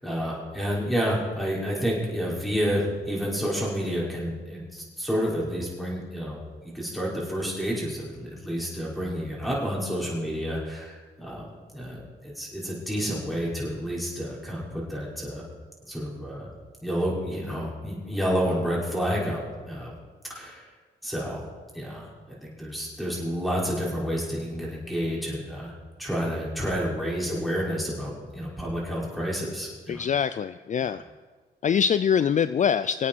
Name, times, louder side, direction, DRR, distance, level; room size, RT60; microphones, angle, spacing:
voice 1, 0.0-6.4 6.7-15.4 15.9-16.5 16.8-19.9 20.3-20.6 21.0-21.4 21.7-25.7 26.0-30.0 30.8-30.9, equal, ahead, -5 dB, 5.5 m, -30 dB
voice 2, 29.9-31.0 31.6-33.1, left 7 dB, 45° left, 13 dB, 0.4 m, -24 dB
25.5 x 8.6 x 4.6 m, 1.4 s
cardioid pair, 80°, 18 cm